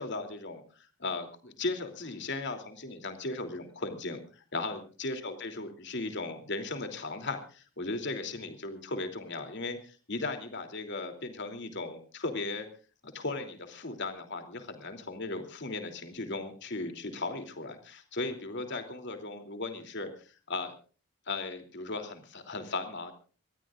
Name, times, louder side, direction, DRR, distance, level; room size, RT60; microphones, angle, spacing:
voice 1, 0.0-12.7 13.0-20.7 21.3-23.1, left 3 dB, 50° left, 6 dB, 3.1 m, -37 dB
25.0 x 19.0 x 2.5 m, 0.38 s
head